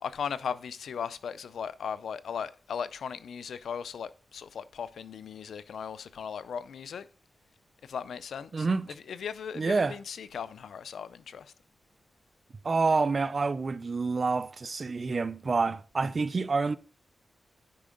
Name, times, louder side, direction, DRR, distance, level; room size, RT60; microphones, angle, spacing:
voice 1, 0.0-7.1 7.8-8.7 9.1-11.5, left 7 dB, 90° left, 0.4 m, -37 dB
voice 2, 8.5-8.9 9.6-10.0 12.6-16.8, right 4 dB, 50° right, 0.5 m, -28 dB
8.6 x 5.0 x 3.8 m
cardioid pair, 65°, 0 cm